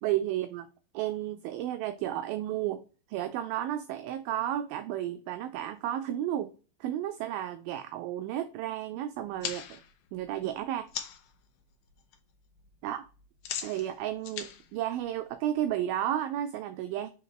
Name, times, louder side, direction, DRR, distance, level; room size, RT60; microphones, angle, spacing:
voice 1, 0.0-0.7 0.9-2.8 3.1-6.5 6.8-9.8 10.1-10.9 12.8-13.0 13.6-17.1, right 12 dB, 85° right, 2.1 m, -32 dB
sound 1, 9.2-11.3 11.7-12.2 12.4-15.7, left 9 dB, 80° left, 1.8 m, -40 dB
5.7 x 4.2 x 4.6 m
omnidirectional pair, 4.6 m